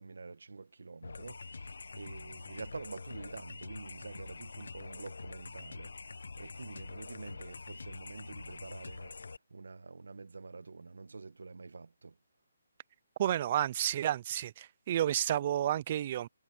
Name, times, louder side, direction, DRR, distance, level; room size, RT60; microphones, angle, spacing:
voice 1, 0.0-5.9 6.4-9.2 9.5-12.2, right 4 dB, 80° right, 1.3 m, -47 dB
sound 1, 1.0-9.4, left 4 dB, 75° left, 1.0 m, -46 dB
voice 2, 13.2-16.3, right 11 dB, 25° right, 0.3 m, -31 dB
hypercardioid pair, 175°, 0 cm